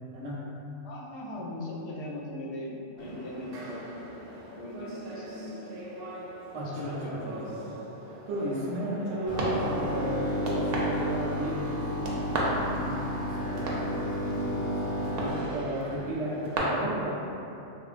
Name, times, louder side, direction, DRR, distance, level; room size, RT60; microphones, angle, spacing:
voice 1, 0.8-3.9 4.1-4.2 4.5-5.9 6.6-7.7 8.9-9.9, left 1 dB, 70° left, -3 dB, 0.8 m, -40 dB
sound 1, 3.0-16.6, right 1 dB, 60° right, 0.6 m, -37 dB
voice 2, 6.5-7.8 8.1-17.2, equal, 85° right, -5 dB, 1.0 m, -35 dB
sound 2, 9.3-15.4, equal, 10° left, 0.6 m, -32 dB
3.1 x 2.4 x 2.4 m, 2.8 s
omnidirectional pair, 1.2 m